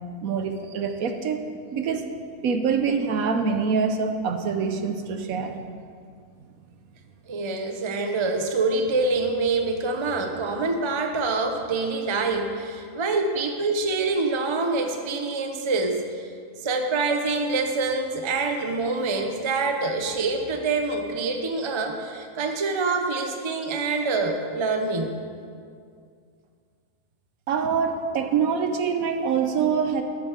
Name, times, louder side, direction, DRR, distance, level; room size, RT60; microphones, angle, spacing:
voice 1, 0.2-2.1 2.4-5.6 27.5-30.0, right 6 dB, 70° right, 6 dB, 1.1 m, -25 dB
voice 2, 7.3-16.3 16.6-25.2, right 3 dB, 30° right, 4 dB, 0.5 m, -26 dB
13.0 x 7.2 x 5.0 m, 2.2 s
omnidirectional pair, 1.7 m